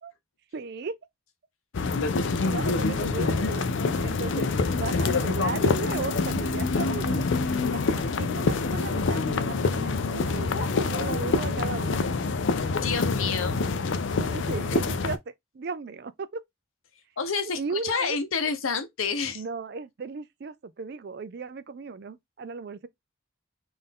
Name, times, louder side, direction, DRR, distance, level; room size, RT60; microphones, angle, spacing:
voice 1, 0.5-0.9 2.4-3.7 4.0-4.5 4.7-7.2 7.7-12.1 14.2-16.4 17.6-18.2 19.3-22.9, right 4 dB, 50° right, 0.4 m, -36 dB
sound 1, 1.7-15.2, left 4 dB, 65° left, 0.4 m, -26 dB
voice 2, 12.7-13.6 17.2-19.4, left 5 dB, 85° left, 0.8 m, -29 dB
3.8 x 2.6 x 3.5 m
head